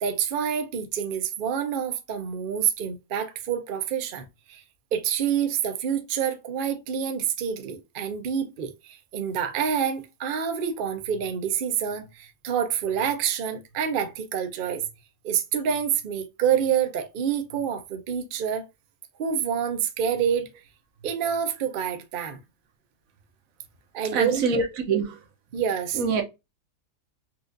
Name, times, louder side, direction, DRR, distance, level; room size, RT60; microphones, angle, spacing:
voice 1, 0.0-4.6 4.9-14.8 15.2-18.7 19.2-20.5 21.0-22.4 23.9-24.4 25.5-26.0, right 8 dB, 55° right, 0.6 m, -27 dB
voice 2, 24.1-25.2 25.9-26.2, right 5 dB, 70° right, 1.2 m, -25 dB
4.3 x 2.4 x 2.5 m
omnidirectional pair, 1.5 m